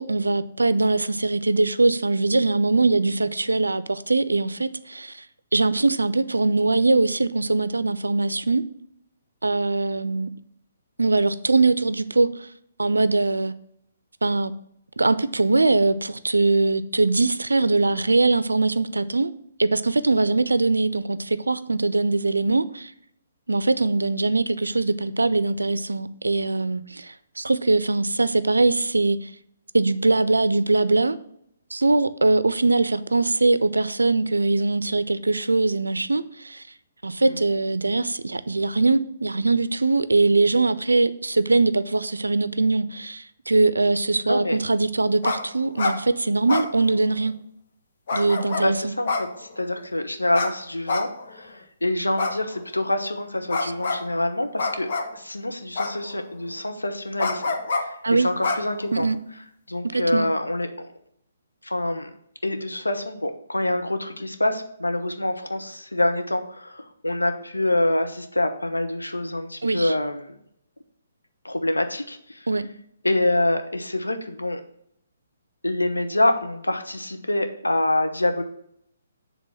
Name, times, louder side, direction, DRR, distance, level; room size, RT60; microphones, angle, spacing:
voice 1, 0.0-5.3 5.5-8.6 9.4-10.3 11.0-12.5 12.8-13.5 14.2-14.5 15.0-19.3 19.6-22.9 23.5-29.3 29.7-31.2 31.7-36.6 37.0-47.3 48.1-48.9 53.6-53.7 58.0-58.3 58.9-59.2 59.9-60.3 69.6-69.9 72.5-72.7, right 3 dB, 80° right, 0.5 m, -22 dB
voice 2, 44.2-44.6 48.5-49.1 49.4-59.1 59.7-60.7 61.6-62.1 62.4-70.3 71.4-72.5 73.0-74.6 75.6-78.4, left 1 dB, 85° left, 0.9 m, -26 dB
sound 1, 45.2-45.4 45.7-46.0 46.5-47.3 48.1-48.7 49.1-49.8 50.3-50.5 50.9-51.5 52.2-52.9 53.5-54.0 54.6-55.2 55.8-56.3 57.2-57.8 58.4-59.2, left 3 dB, 50° left, 1.2 m, -26 dB
7.4 x 3.6 x 5.9 m
figure-of-eight pair, 130°, 0 cm